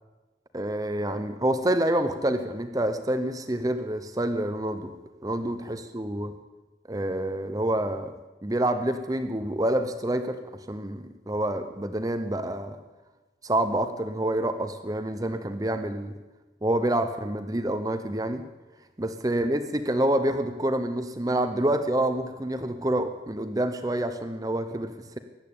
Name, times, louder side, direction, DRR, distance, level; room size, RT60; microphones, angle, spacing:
voice 1, 0.5-5.0 5.2-6.3 6.9-8.1 8.4-10.4 10.7-12.8 13.4-16.1 16.6-18.4 19.0-25.2, right 1 dB, 20° right, 9 dB, 0.8 m, -27 dB
15.5 x 10.5 x 8.5 m, 1.2 s
head